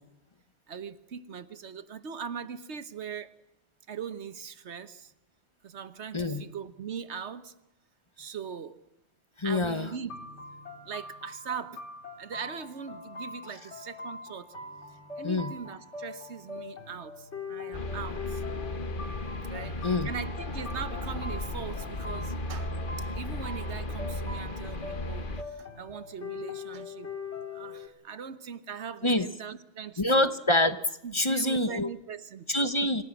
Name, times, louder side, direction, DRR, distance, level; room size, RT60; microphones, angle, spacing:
voice 1, 0.7-3.3 3.9-5.1 5.6-7.5 8.2-8.8 9.4-10.1 10.8-11.8 12.2-14.5 14.9-18.4 19.5-27.1 27.5-30.3 31.0-32.5, right 7 dB, 85° right, 1.4 m, -40 dB
voice 2, 9.4-9.9 15.2-15.5 19.8-20.1 29.0-29.3 30.0-30.8 31.1-31.9 32.5-33.0, left 1 dB, 30° left, 1.1 m, -26 dB
sound 1, 10.1-27.9, left 4 dB, 85° left, 3.3 m, -42 dB
sound 2, 17.7-25.4, left 1 dB, 50° left, 1.4 m, -35 dB
26.0 x 17.0 x 7.4 m
omnidirectional pair, 1.1 m